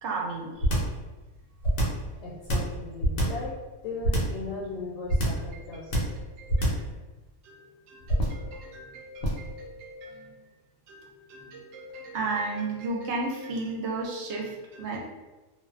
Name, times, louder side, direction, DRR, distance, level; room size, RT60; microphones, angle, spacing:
voice 1, 0.0-0.7 5.5-5.6 6.1-6.8 7.4-10.3 10.9-15.0, right 3 dB, 65° right, -1 dB, 0.8 m, -35 dB
sound 1, 0.6-1.0 1.6-2.1 2.5-3.5 4.0-4.4 5.1-5.5 5.9-6.2 6.5-6.9 8.1-8.5 9.2-9.5, right 1 dB, 85° left, 1.1 m, -25 dB
voice 2, 2.2-3.5 3.8-6.1 10.1-10.2, left 3 dB, 65° left, -5 dB, 0.8 m, -37 dB
2.5 x 2.1 x 2.4 m, 1.2 s
omnidirectional pair, 1.4 m